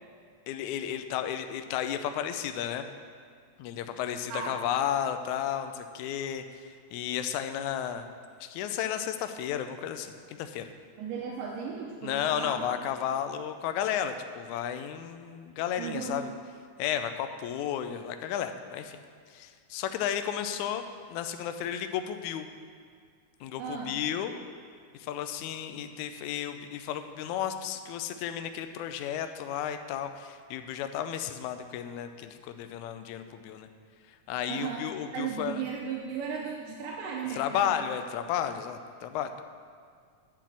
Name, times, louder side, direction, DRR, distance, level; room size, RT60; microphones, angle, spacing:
voice 1, 0.5-2.9 3.6-6.4 6.9-8.1 8.4-10.7 12.0-16.3 16.8-19.0 19.3-20.8 21.1-22.5 23.4-24.4 25.0-33.7 34.3-35.6 37.3-39.4, left 9 dB, 80° left, 8 dB, 1.8 m, -33 dB
voice 2, 11.0-12.9 15.8-16.2 23.6-23.9 34.5-34.9 35.1-37.8, right 6 dB, 90° right, -1 dB, 2.5 m, -36 dB
9.0 x 5.8 x 7.5 m, 2.1 s
omnidirectional pair, 3.7 m